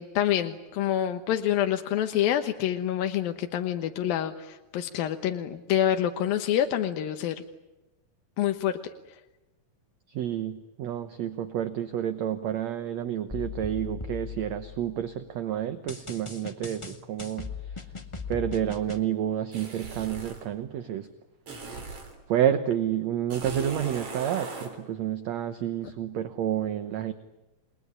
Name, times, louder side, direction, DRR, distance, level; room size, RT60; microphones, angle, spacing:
voice 1, 0.0-7.4 8.4-8.7, left 11 dB, 85° left, 6 dB, 3.0 m, -27 dB
voice 2, 10.1-17.5 18.3-21.1 22.3-27.1, right 10 dB, 65° right, 10 dB, 1.9 m, -29 dB
sound 1, 13.3-15.1 15.9-19.0, left 5 dB, 35° left, 0.5 m, -38 dB
sound 2, 19.5-20.5 21.5-22.2 23.3-24.7, right 4 dB, 40° right, 4.8 m, -38 dB
29.0 x 20.5 x 9.8 m, 1.0 s
omnidirectional pair, 4.0 m